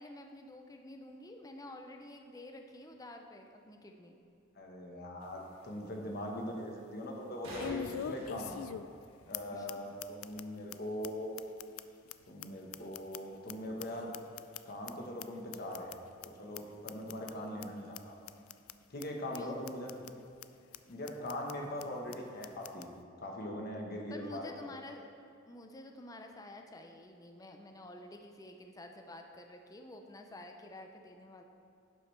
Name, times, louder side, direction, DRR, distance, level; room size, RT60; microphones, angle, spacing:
voice 1, 0.0-4.2 9.5-9.7 19.4-19.6 24.1-25.1 25.5-31.4, left 1 dB, 20° left, 4 dB, 0.5 m, -49 dB
sound 1, 4.2-4.3 7.1-9.2 12.1-12.2, right 1 dB, 70° right, 2.1 m, -48 dB
voice 2, 4.5-8.7 9.3-11.3 12.3-14.1 14.6-16.0 16.2-18.1 18.9-20.0 20.9-22.9 23.2-24.5, left 1 dB, 50° left, 0 dB, 1.3 m, -41 dB
sound 2, 5.2-5.3 5.8-5.9 7.6-9.0 9.3-9.4 9.7-9.8 10.0-10.4 10.7-10.8 11.0-11.1 11.4-13.5 13.8-14.9 15.2-15.3 15.5-15.9 16.2-16.3 16.5-16.6 16.9-17.3 17.6-17.7 17.9-18.0 18.3-18.7 19.0-19.1 19.3-19.4 19.7-20.1 20.4-20.5 20.7-20.8 21.1-21.5 21.8-21.9 22.1-22.2 22.4-22.9, left 9 dB, 90° left, 0.3 m, -42 dB
11.0 x 7.6 x 3.3 m, 2.4 s
head